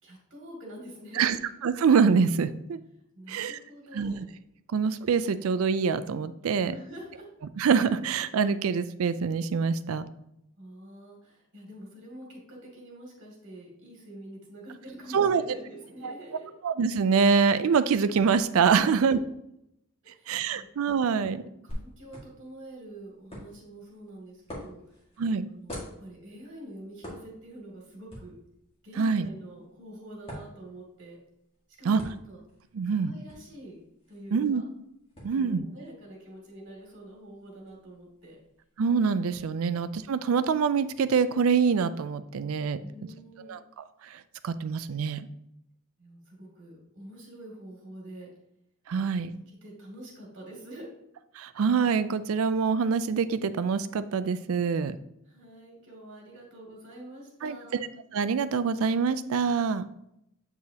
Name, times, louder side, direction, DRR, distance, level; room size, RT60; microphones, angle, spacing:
voice 1, 0.0-1.3 3.1-4.2 6.6-7.3 10.6-16.5 18.8-19.1 20.0-20.7 21.3-25.0 25.5-28.3 28.8-31.2 31.8-32.0 32.3-32.4 32.8-33.8 34.1-34.6 35.3-38.4 42.8-43.6 46.0-48.3 48.9-50.9 55.3-57.8, right 1 dB, 55° right, -2 dB, 2.3 m, -46 dB
voice 2, 1.6-2.8 3.3-3.6 3.9-4.1 4.7-6.7 7.6-10.1 15.1-15.4 16.0-16.1 16.6-19.2 20.3-21.4 25.2-25.5 29.0-29.3 31.8-32.0 32.7-33.1 34.3-34.6 35.2-35.6 38.8-42.8 43.5-43.6 44.0-45.3 48.9-49.3 51.4-55.0 57.4-57.9 58.1-59.9, right 5 dB, 75° right, 13 dB, 0.4 m, -25 dB
sound 1, 21.7-39.4, equal, 25° left, 1.7 m, -48 dB
7.8 x 4.8 x 2.8 m, 0.79 s
head